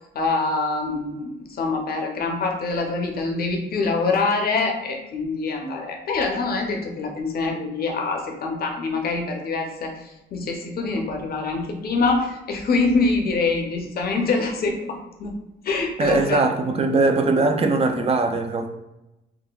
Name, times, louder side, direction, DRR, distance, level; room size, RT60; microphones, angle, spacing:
voice 1, 0.1-1.3 1.6-15.4 15.6-16.4, left 3 dB, 50° left, 2 dB, 0.7 m, -25 dB
voice 2, 16.0-18.7, right 3 dB, 30° right, 5 dB, 0.4 m, -20 dB
3.7 x 2.1 x 2.3 m, 0.95 s
cardioid pair, 90°, 20 cm